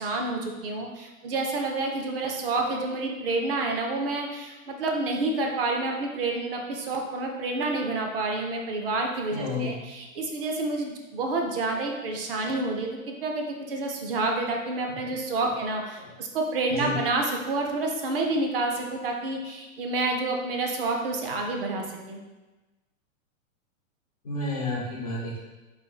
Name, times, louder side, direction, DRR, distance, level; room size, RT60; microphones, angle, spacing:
voice 1, 0.0-22.2, right 2 dB, 45° right, 2 dB, 0.5 m, -29 dB
voice 2, 9.3-9.8 16.7-16.9 24.2-25.4, left 2 dB, 30° left, -4 dB, 0.4 m, -30 dB
4.1 x 2.4 x 3.8 m, 1.1 s
hypercardioid pair, 160°, 42 cm